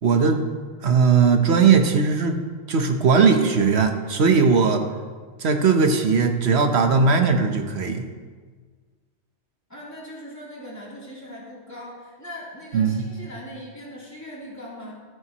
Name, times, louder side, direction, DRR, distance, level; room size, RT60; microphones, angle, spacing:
voice 1, 0.0-0.5 0.8-2.4 2.7-4.8 5.4-8.1 12.7-13.0, right 5 dB, 65° right, 6 dB, 1.2 m, -18 dB
voice 2, 9.7-15.0, equal, 15° left, -7 dB, 3.2 m, -40 dB
13.0 x 12.5 x 3.0 m, 1.5 s
omnidirectional pair, 1.2 m